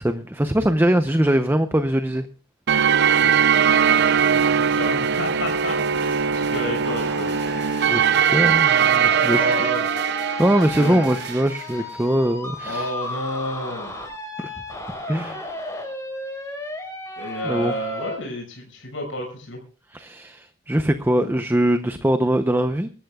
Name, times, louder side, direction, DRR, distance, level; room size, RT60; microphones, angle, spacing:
voice 1, 0.0-2.3 7.9-9.5 10.4-12.9 15.1-15.5 17.4-17.7 19.9-22.9, right 1 dB, 10° right, 0.7 m, -22 dB
sound 1, 2.7-11.5, right 8 dB, 60° right, 0.6 m, -20 dB
voice 2, 3.2-7.6 9.3-9.9 10.8-11.1 12.6-13.9 17.2-19.6, left 1 dB, 85° left, 6.4 m, -31 dB
sound 2, 6.8-18.2, left 1 dB, 15° left, 4.8 m, -34 dB
26.0 x 13.5 x 2.4 m
head